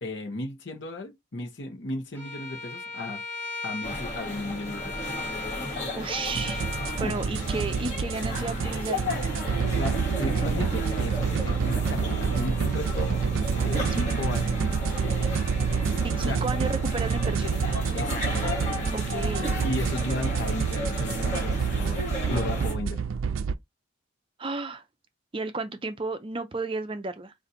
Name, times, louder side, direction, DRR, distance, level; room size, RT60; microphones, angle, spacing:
voice 1, 0.0-3.2 3.6-5.0 7.0-7.1 9.7-13.2 13.6-14.6 16.2-16.4 16.8-17.0 17.9-18.5 19.6-23.0, left 2 dB, 60° left, 0.9 m, -35 dB
Bowed string instrument, 2.1-7.0, left 3 dB, 10° left, 0.9 m, -38 dB
sound 1, 3.8-22.7, left 1 dB, 35° left, 1.9 m, -33 dB
voice 2, 5.9-6.7 7.0-9.1 13.9-14.1 16.0-17.6 18.9-19.6 24.4-24.8 25.3-27.3, right 3 dB, 25° right, 0.5 m, -33 dB
sound 2, 6.4-23.5, right 6 dB, 90° right, 0.4 m, -28 dB
3.9 x 2.6 x 4.2 m
head